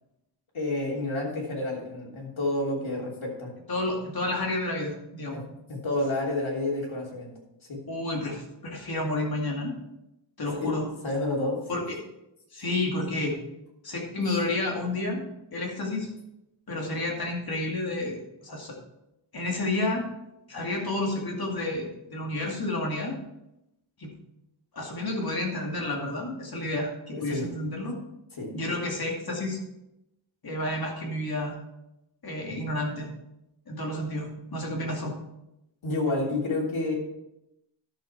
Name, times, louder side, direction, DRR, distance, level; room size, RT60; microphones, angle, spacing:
voice 1, 0.5-3.5 5.3-5.4 5.7-7.3 7.7-7.8 10.5-10.7 11.0-11.8 27.1-27.5 28.4-28.5 35.8-37.0, left 2 dB, 80° left, -3 dB, 3.2 m, -29 dB
voice 2, 3.7-5.4 7.9-9.7 10.4-10.9 11.7-12.0 12.5-13.4 13.8-15.2 15.5-16.1 16.7-18.8 19.3-20.1 20.5-23.2 24.0-24.1 24.7-27.9 28.5-29.6 30.4-31.6 32.2-33.1 33.7-35.1, left 2 dB, 50° left, -1 dB, 2.3 m, -30 dB
11.5 x 7.0 x 4.5 m, 0.88 s
wide cardioid pair, 145°, 47 cm